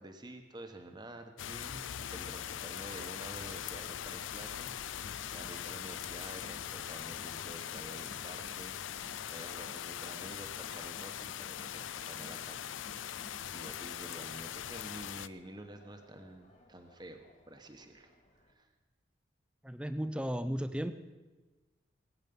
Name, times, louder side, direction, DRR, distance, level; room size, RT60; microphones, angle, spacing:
voice 1, 0.0-1.8 2.1-13.3 13.5-18.7, right 1 dB, 20° right, 5 dB, 1.1 m, -49 dB
sound 1, 1.4-15.3, left 10 dB, 85° left, 0.5 m, -41 dB
Crowd, 4.9-18.5, equal, 40° left, 2.5 m, -59 dB
voice 2, 19.6-20.9, equal, 5° right, 11 dB, 0.6 m, -34 dB
21.0 x 9.1 x 5.4 m, 1.2 s
head